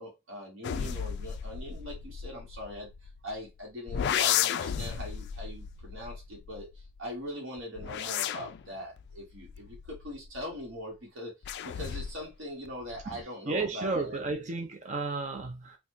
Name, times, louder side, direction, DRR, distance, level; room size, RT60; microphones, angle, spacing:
voice 1, 0.0-2.9 3.2-6.7 7.0-11.4 11.6-14.2, left 1 dB, 65° right, 1.3 m, -41 dB
sound 1, 0.6-3.4 3.9-7.0 7.6-10.6 11.4-12.3 12.7-13.2, left 9 dB, 55° left, 0.3 m, -34 dB
voice 2, 13.1-15.8, right 3 dB, 35° right, 0.5 m, -33 dB
4.1 x 2.3 x 3.1 m
head